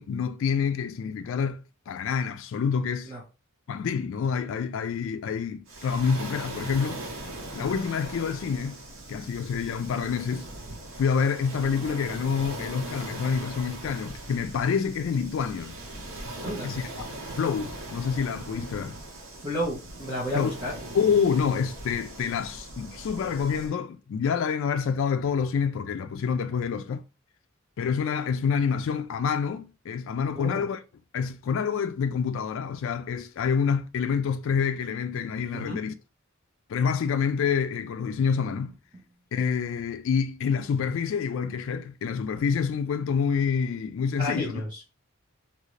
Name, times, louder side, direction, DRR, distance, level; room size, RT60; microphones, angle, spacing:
voice 1, 0.0-3.1 3.7-7.1 7.5-8.8 9.1-10.5 11.0-15.8 16.6-16.9 17.3-19.0 20.3-20.5 20.9-27.0 27.8-30.8 31.1-35.9 36.7-38.7 39.3-44.6, left 6 dB, 65° left, 0.3 m, -27 dB
Waves surf, 5.7-23.7, right 2 dB, 70° right, 0.8 m, -40 dB
voice 2, 19.3-20.7 30.3-30.7 35.5-35.8 38.9-39.0 44.2-45.0, equal, 20° right, 1.0 m, -32 dB
2.8 x 2.6 x 3.1 m
head